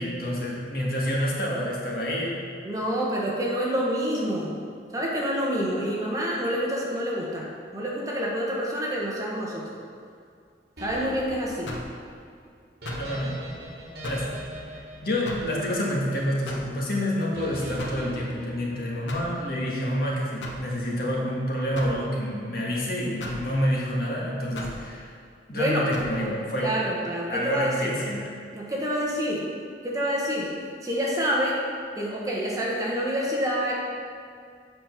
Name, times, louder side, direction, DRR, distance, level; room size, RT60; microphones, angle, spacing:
voice 1, 0.0-2.4 13.0-13.4 14.0-14.3 15.0-25.1 25.5-26.7 27.3-28.3, equal, 55° left, -4 dB, 1.6 m, -28 dB
voice 2, 2.6-4.5 4.9-7.5 7.7-9.6 10.8-11.7 25.5-25.9 26.2-26.3 26.6-27.9 28.5-29.5 29.8-30.5 30.8-31.6 32.0-33.7, equal, 20° right, -4 dB, 1.3 m, -27 dB
sound 1, 10.8-16.1 17.3-19.3, equal, 60° right, 1.6 m, -41 dB
sound 2, 11.7-12.0 12.8-13.1 14.0-14.3 15.2-15.5 16.4-16.7 17.8-18.1 19.1-19.4 20.4-20.7 21.7-22.0 23.2-23.5 24.5-24.8 25.9-26.1, left 1 dB, 85° left, 1.1 m, -35 dB
7.8 x 5.2 x 5.9 m, 2.2 s
head